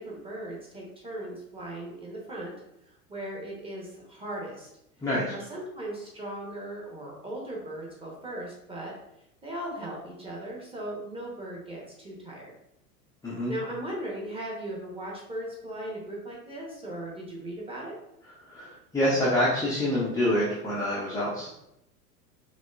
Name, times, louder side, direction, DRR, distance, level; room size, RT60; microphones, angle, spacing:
voice 1, 0.0-2.6 2.9-4.7 5.3-8.9 9.4-12.5 13.5-17.9, right 1 dB, 10° right, -3 dB, 1.1 m, -38 dB
voice 2, 5.0-5.3 13.2-13.5 18.5-21.5, left 1 dB, 5° left, -8 dB, 0.7 m, -26 dB
5.1 x 2.9 x 2.4 m, 0.82 s
figure-of-eight pair, 85°, 46 cm